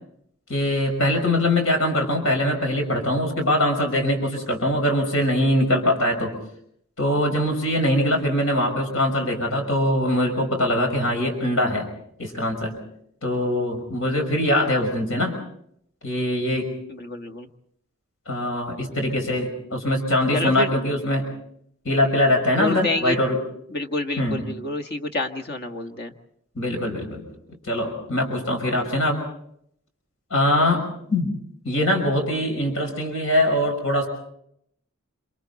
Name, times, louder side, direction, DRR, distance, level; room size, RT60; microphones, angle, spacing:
voice 1, 0.5-6.3 7.0-11.9 12.2-12.7 13.2-15.4 16.0-16.7 18.3-21.3 21.8-23.4 24.2-24.5 26.6-27.2 27.7-29.2 30.3-31.3 31.6-34.1, left 1 dB, 75° left, 4 dB, 5.7 m, -22 dB
voice 2, 16.9-17.5 20.3-20.7 22.6-23.2 23.7-26.1, left 2 dB, 50° left, 6 dB, 1.6 m, -28 dB
28.0 x 27.0 x 4.1 m, 0.71 s
head